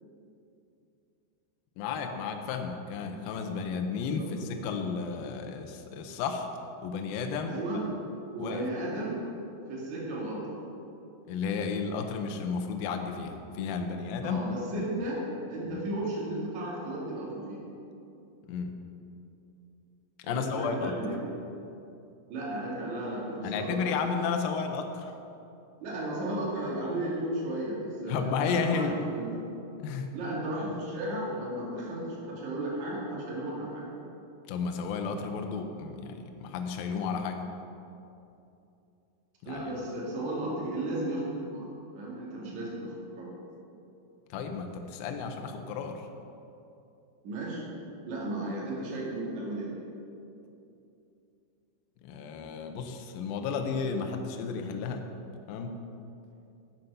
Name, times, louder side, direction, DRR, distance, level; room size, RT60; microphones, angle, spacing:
voice 1, 1.8-6.5 6.8-7.6 8.4-8.7 11.3-14.4 14.8-14.9 15.7-15.8 18.5-18.8 20.2-21.0 23.4-25.1 28.1-28.9 29.8-30.1 34.5-37.4 39.4-39.6 44.3-46.1 52.0-55.1 55.5-55.8, left 5 dB, 80° left, 5 dB, 2.1 m, -33 dB
voice 2, 7.5-7.8 8.3-9.2 9.7-10.5 14.2-15.2 15.5-17.6 20.3-21.2 22.3-23.8 25.8-29.4 30.1-33.9 39.4-41.7 41.9-43.3 47.2-47.6 48.1-49.7, right 1 dB, 50° right, -5 dB, 3.2 m, -34 dB
11.0 x 7.9 x 5.5 m, 2.7 s
omnidirectional pair, 5.2 m